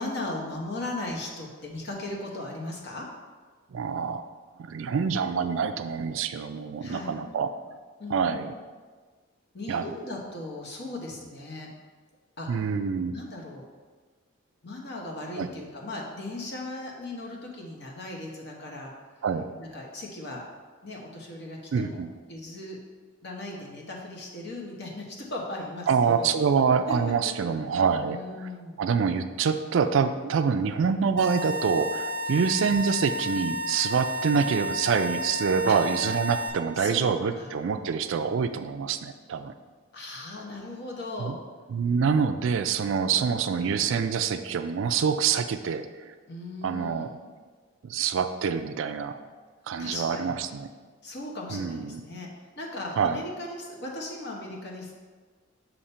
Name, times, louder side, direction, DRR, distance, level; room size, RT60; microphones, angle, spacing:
voice 1, 0.0-3.1 6.8-7.2 8.0-8.5 9.5-11.7 12.4-12.6 13.1-13.6 14.6-18.9 19.5-20.4 20.8-22.8 23.2-26.3 26.9-27.0 27.2-27.3 28.1-28.8 32.3-32.5 35.7-35.8 36.7-37.5 39.9-41.4 43.0-44.0 46.3-47.1 49.8-50.4 51.0-52.3 52.6-54.9, left 2 dB, 50° left, -1 dB, 1.0 m, -37 dB
voice 2, 3.7-4.2 4.6-7.5 8.1-8.5 9.7-9.8 12.5-13.1 15.4-15.5 19.2-19.4 21.7-22.1 25.9-28.2 28.8-39.5 41.2-41.4 41.7-45.8 46.6-47.1 47.8-49.2 49.7-50.7 51.5-52.0 53.0-53.2, right 6 dB, 60° right, 9 dB, 0.3 m, -26 dB
sound 1, 31.2-36.5, equal, 80° left, 1.2 m, -32 dB
7.0 x 2.9 x 5.4 m, 1.5 s
head